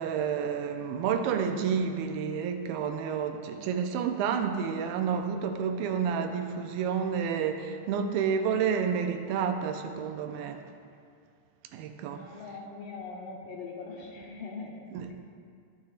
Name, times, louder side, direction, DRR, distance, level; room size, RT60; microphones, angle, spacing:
voice 1, 0.0-10.6 11.7-12.3 14.9-15.1, right 7 dB, 80° right, 6 dB, 2.4 m, -30 dB
voice 2, 12.1-14.8 15.1-15.2, left 4 dB, 70° left, -1 dB, 2.2 m, -41 dB
14.5 x 9.2 x 2.4 m, 2.2 s
omnidirectional pair, 4.3 m